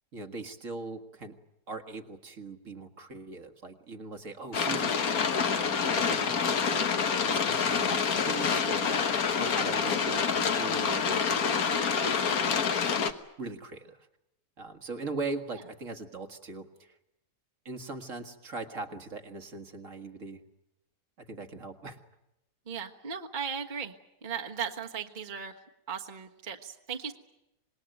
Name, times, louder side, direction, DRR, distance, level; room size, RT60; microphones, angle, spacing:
voice 1, 0.1-1.4 1.7-12.6 13.4-14.1 14.6-17.0 17.7-20.4 21.2-22.0, right 3 dB, 50° right, 6 dB, 2.0 m, -41 dB
sound 1, 4.5-13.1, left 6 dB, 65° left, 1.8 m, -27 dB
voice 2, 22.7-23.9 24.2-25.5 25.9-27.1, right 7 dB, 30° right, 2 dB, 1.5 m, -37 dB
26.5 x 20.5 x 9.1 m, 0.89 s
omnidirectional pair, 1.7 m